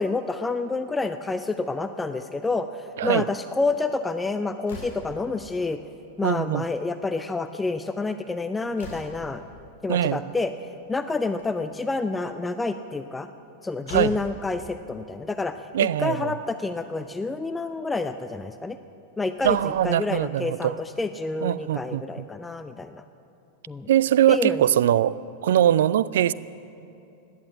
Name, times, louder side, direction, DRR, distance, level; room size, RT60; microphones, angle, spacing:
voice 1, 0.0-5.8 6.2-9.4 9.8-10.5 10.9-13.3 13.6-18.8 19.2-23.0 23.7-23.9 24.3-24.6, left 3 dB, 10° left, 10 dB, 0.5 m, -28 dB
Slam, 4.6-5.2 6.5-6.9 7.2-7.3 7.6-7.7 8.2-9.4 11.1-11.8 13.4-13.5 13.8-14.3 15.5-15.6 16.0-16.1 16.9-17.1 18.8-18.9 19.3-19.9, left 3 dB, 60° left, 4.3 m, -42 dB
voice 2, 6.2-6.6 9.9-10.2 13.9-14.2 15.7-16.3 19.4-20.8 21.4-22.3 23.9-25.2 25.4-26.3, right 11 dB, 60° right, 20 dB, 0.3 m, -22 dB
17.0 x 11.0 x 7.5 m, 2.8 s
figure-of-eight pair, 90°, 0 cm